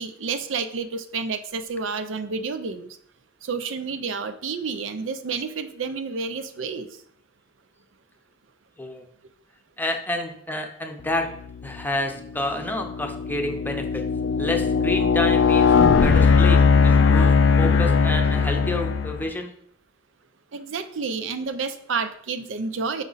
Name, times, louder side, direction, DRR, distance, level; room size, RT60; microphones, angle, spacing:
voice 1, 0.0-3.0 3.4-6.9 20.5-23.0, right 4 dB, 85° right, 10 dB, 0.5 m, -30 dB
voice 2, 9.8-11.3 11.6-14.0 14.4-19.5, left 1 dB, 10° left, 4 dB, 0.6 m, -29 dB
sound 1, 11.5-11.9 12.4-19.3, left 5 dB, 80° left, 0.4 m, -19 dB
5.2 x 4.8 x 4.0 m, 0.67 s
head